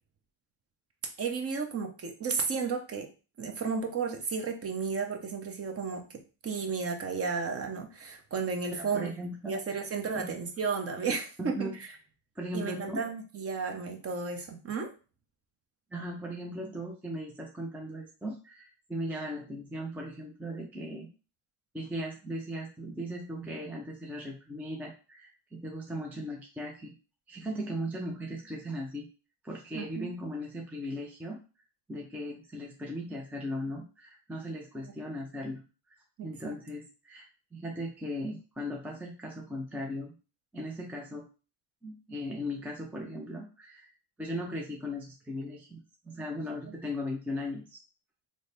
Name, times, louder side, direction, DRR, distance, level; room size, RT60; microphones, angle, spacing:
voice 1, 1.2-3.1 3.4-9.1 9.5-11.9 12.5-14.9 29.7-30.1 34.8-34.9 36.2-36.6 46.7-46.8, right 5 dB, 30° right, 4 dB, 0.8 m, -33 dB
voice 2, 8.7-9.5 10.1-10.3 11.4-11.7 12.4-13.0 15.9-21.1 21.7-26.9 27.3-29.1 29.4-31.4 31.9-35.6 36.2-37.3 37.5-40.1 40.5-41.2 41.8-43.9 44.2-47.8, equal, 5° right, -1 dB, 0.4 m, -38 dB
3.1 x 2.1 x 4.1 m, 0.34 s
cardioid pair, 110°, 50 cm